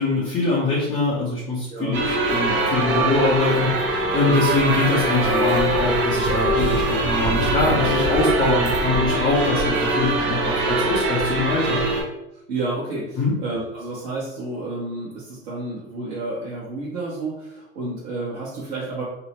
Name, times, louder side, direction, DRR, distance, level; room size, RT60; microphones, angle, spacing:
voice 1, 0.0-11.9 13.2-13.3, left 2 dB, 15° left, -6 dB, 0.3 m, -23 dB
sound 1, 1.9-12.0, right 1 dB, 30° right, 0.7 m, -22 dB
voice 2, 12.3-19.0, right 2 dB, 50° right, -6 dB, 1.0 m, -30 dB
2.8 x 2.0 x 2.9 m, 0.90 s
hypercardioid pair, 115°, 42 cm